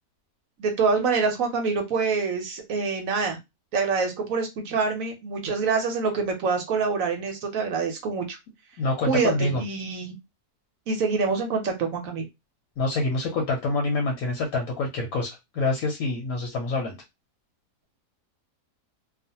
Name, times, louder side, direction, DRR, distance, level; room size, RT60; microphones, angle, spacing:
voice 1, 0.6-3.4 3.7-8.4 9.0-10.1 10.9-12.2, right 4 dB, 65° right, 4 dB, 1.0 m, -26 dB
voice 2, 8.8-9.6 12.8-17.0, left 2 dB, 70° left, 2 dB, 1.0 m, -26 dB
2.4 x 2.4 x 2.7 m, 0.21 s
omnidirectional pair, 1.7 m